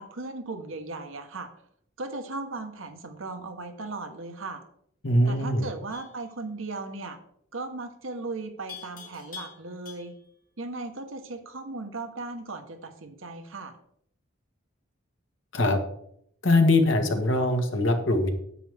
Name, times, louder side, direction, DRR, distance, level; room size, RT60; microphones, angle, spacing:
voice 1, 0.0-1.5 2.0-4.6 5.3-7.2 7.5-10.1 10.6-13.7, right 3 dB, 80° right, 6 dB, 1.2 m, -37 dB
voice 2, 5.0-5.6 15.5-15.8 16.4-18.3, left 2 dB, 75° left, 5 dB, 1.5 m, -22 dB
Livestock farm animals working animals, 5.9-6.2 8.7-10.3, left 7 dB, 45° left, 2.6 m, -45 dB
10.0 x 8.5 x 3.5 m, 0.68 s
head